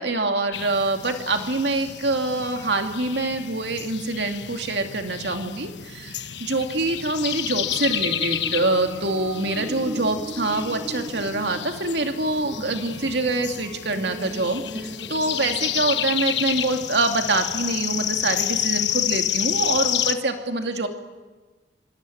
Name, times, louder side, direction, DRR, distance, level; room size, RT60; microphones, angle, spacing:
voice 1, 0.0-20.9, right 2 dB, 65° right, 5 dB, 2.5 m, -25 dB
sound 1, 0.5-20.1, left 11 dB, 75° left, 1.2 m, -30 dB
sound 2, 7.5-16.8, equal, 20° right, 1.3 m, -39 dB
26.0 x 25.5 x 8.6 m, 1.3 s
head